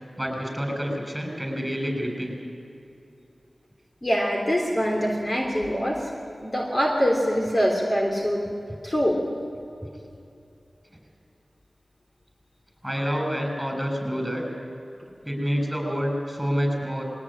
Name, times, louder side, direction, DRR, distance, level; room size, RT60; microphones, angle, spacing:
voice 1, 0.2-2.3 12.8-14.4 15.2-17.0, equal, 5° right, 3 dB, 7.2 m, -28 dB
voice 2, 4.0-6.0 6.4-8.4 8.8-9.2, equal, 35° left, -1 dB, 3.4 m, -24 dB
21.5 x 18.0 x 8.8 m, 2.7 s
cardioid pair, 50°, 0 cm